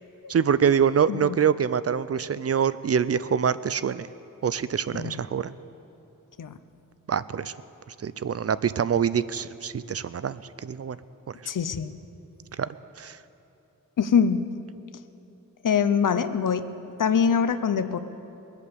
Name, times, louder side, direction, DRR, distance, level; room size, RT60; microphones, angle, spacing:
voice 1, 0.3-4.1 4.4-5.5 7.1-7.5 8.0-11.0 11.3-11.4 12.6-12.7 13.0-13.2, right 7 dB, 45° right, 16 dB, 0.4 m, -25 dB
voice 2, 11.5-11.9 14.0-14.5 15.6-16.7 17.0-18.0, left 7 dB, 70° left, 12 dB, 0.7 m, -23 dB
21.5 x 8.2 x 6.9 m, 2.9 s
wide cardioid pair, 100°, 33 cm